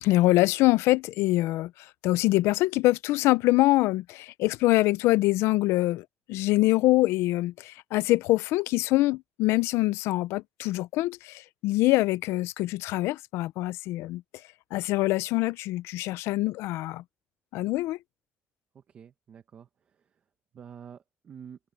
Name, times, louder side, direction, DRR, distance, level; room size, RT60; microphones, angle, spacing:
voice 1, 0.0-14.2 14.7-17.0 17.5-18.0, left 18 dB, 80° left, 0.5 m, -24 dB
voice 2, 18.7-20.2 20.5-21.6, right 8 dB, 30° right, 1.0 m, -48 dB
cardioid pair, 175°, 4 cm